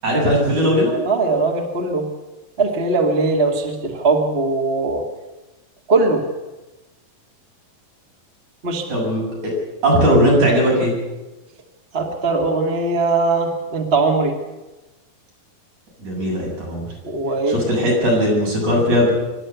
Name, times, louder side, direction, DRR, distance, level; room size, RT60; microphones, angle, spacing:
voice 1, 0.0-0.9 8.9-9.2 9.8-10.9 16.0-16.8 17.5-19.1, equal, 55° right, -3 dB, 9.0 m, -18 dB
voice 2, 1.0-2.1 2.6-5.0 5.9-6.2 8.6-8.9 11.9-14.3 17.0-17.6, right 3 dB, 25° right, 2 dB, 1.5 m, -20 dB
25.5 x 12.5 x 8.2 m, 1.1 s
omnidirectional pair, 4.0 m